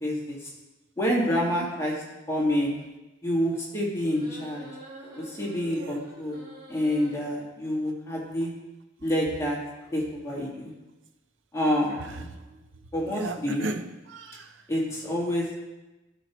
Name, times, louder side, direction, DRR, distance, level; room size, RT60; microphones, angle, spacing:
voice 1, 0.0-0.4 1.0-1.9 2.3-2.7 3.2-4.7 5.2-6.4 6.7-8.5 9.0-9.6 9.9-10.7 11.5-12.3 12.9-13.7 14.7-15.6, equal, 15° left, -5 dB, 1.8 m, -27 dB
voice 2, 1.2-1.7 5.7-6.1 11.9-14.7, right 2 dB, 75° right, 7 dB, 0.6 m, -38 dB
sound 1, 4.1-7.1, right 1 dB, 25° right, 1.8 m, -46 dB
13.5 x 4.7 x 3.0 m, 1.1 s
head